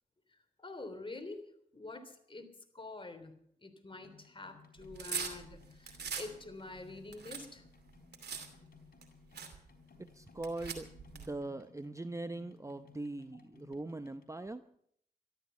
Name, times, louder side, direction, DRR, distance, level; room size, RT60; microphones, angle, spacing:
voice 1, 0.3-1.4 1.7-3.3 3.6-7.6, left 3 dB, 30° left, 7 dB, 3.3 m, -47 dB
sound 1, 3.9-14.3, left 5 dB, 60° left, 3.5 m, -60 dB
sound 2, 4.8-6.3 6.8-8.5 9.0-9.1 9.3-9.6 10.4-11.3, right 6 dB, 75° right, 2.6 m, -41 dB
voice 2, 10.1-14.6, right 2 dB, 20° right, 11 dB, 0.7 m, -41 dB
13.5 x 13.0 x 6.9 m, 0.68 s
cardioid pair, 50°, 17 cm